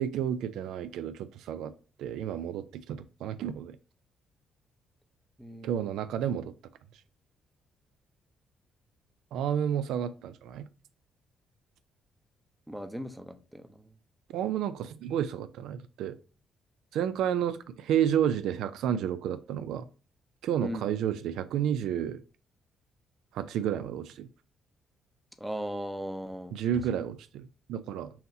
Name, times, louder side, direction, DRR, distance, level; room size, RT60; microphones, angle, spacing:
voice 1, 0.0-1.7 2.0-3.8 5.6-6.5 9.3-10.7 14.3-16.2 16.9-19.9 20.4-22.2 23.3-24.3 26.5-28.1, right 9 dB, 85° right, 0.3 m, -31 dB
voice 2, 5.4-5.7 12.7-13.9 20.6-20.9 25.4-26.5 26.9-27.1, equal, 5° right, 0.6 m, -38 dB
5.7 x 2.8 x 2.7 m
cardioid pair, 90°, 0 cm